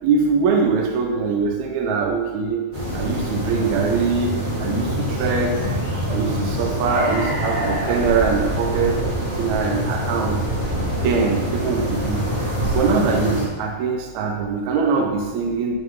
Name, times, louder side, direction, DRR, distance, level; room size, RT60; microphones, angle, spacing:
voice 1, 0.0-2.6 2.9-5.7 6.1-10.4 11.0-12.4 12.7-15.8, right 5 dB, 75° right, 1 dB, 1.9 m, -22 dB
sound 1, 2.7-13.4, equal, 30° right, 2.2 m, -25 dB
9.1 x 5.8 x 3.6 m, 1.3 s
omnidirectional pair, 3.7 m